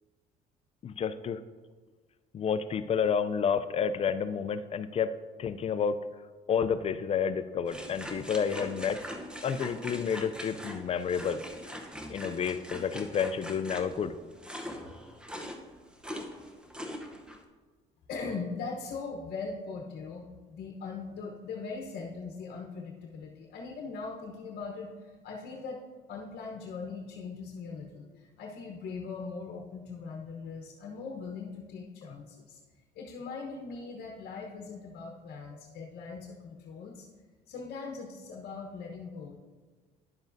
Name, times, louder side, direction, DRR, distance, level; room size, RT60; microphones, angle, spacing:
voice 1, 0.8-1.4 2.3-5.1 5.4-6.0 6.5-9.0 9.4-11.4 12.1-14.1, left 7 dB, 35° left, 12 dB, 0.4 m, -30 dB
sound 1, 7.7-17.4, equal, 5° right, 0.8 m, -42 dB
voice 2, 18.1-25.8 26.1-32.6 32.9-37.1 37.5-39.4, left 4 dB, 65° left, 1 dB, 1.0 m, -40 dB
10.5 x 7.2 x 2.6 m, 1.4 s
cardioid pair, 110°, 17 cm